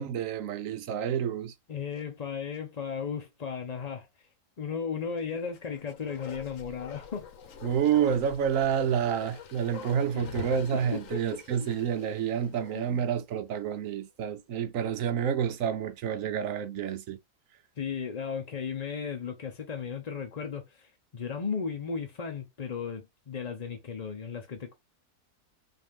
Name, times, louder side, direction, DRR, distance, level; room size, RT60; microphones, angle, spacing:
voice 1, 0.0-1.5 7.6-17.2, right 8 dB, 65° right, 1.0 m, -29 dB
voice 2, 1.7-4.1 4.6-7.3 10.1-10.3 10.7-11.7 12.7-13.0 17.8-24.7, left 6 dB, 45° left, 0.5 m, -35 dB
Bark, 5.5-13.1 13.4-13.5, left 7 dB, 60° left, 1.1 m, -45 dB
5.4 x 2.7 x 3.4 m
omnidirectional pair, 1.6 m